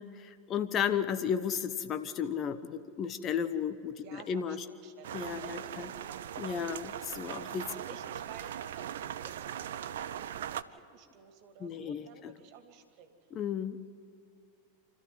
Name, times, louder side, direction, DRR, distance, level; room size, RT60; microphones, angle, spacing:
voice 1, 0.0-4.6 5.1-5.9 6.4-7.7 11.6-12.3 13.3-13.8, left 8 dB, 35° left, 11 dB, 1.0 m, -34 dB
voice 2, 4.0-6.3 7.7-13.2, right 7 dB, 50° right, 6 dB, 2.5 m, -53 dB
sound 1, 5.0-10.6, right 10 dB, 65° right, 0.7 m, -40 dB
29.0 x 13.5 x 9.4 m, 2.4 s
figure-of-eight pair, 90°, 0 cm